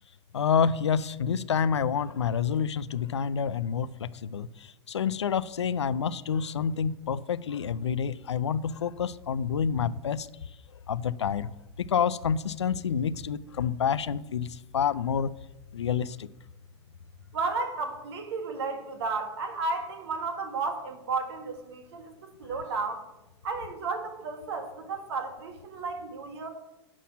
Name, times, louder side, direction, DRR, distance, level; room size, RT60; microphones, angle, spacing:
voice 1, 0.3-10.3 10.9-11.5 11.8-15.3 15.7-16.3, left 7 dB, 80° left, 0.4 m, -28 dB
voice 2, 17.3-23.0 23.4-26.5, right 4 dB, 65° right, 1.8 m, -33 dB
10.5 x 4.2 x 7.2 m
figure-of-eight pair, 90°, 14 cm